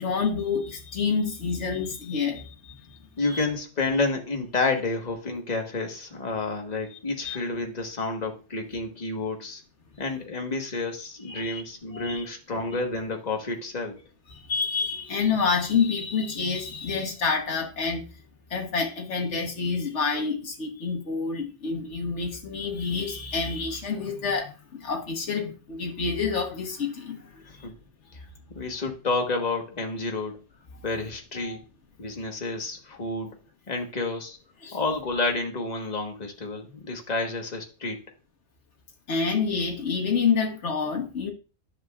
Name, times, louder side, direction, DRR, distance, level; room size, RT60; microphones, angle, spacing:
voice 1, 0.0-3.0 3.2-3.5 7.2-7.4 11.3-11.6 11.9-12.2 14.3-18.1 18.5-27.7 31.4-31.6 34.6-34.8 39.1-41.3, left 5 dB, 85° left, 1.5 m, -28 dB
voice 2, 3.2-9.6 10.0-14.0 27.6-27.7 28.5-30.4 30.8-31.6 32.0-33.4 33.7-34.4 34.7-38.0, left 3 dB, 40° left, 1.4 m, -30 dB
10.5 x 6.6 x 2.3 m
omnidirectional pair, 1.2 m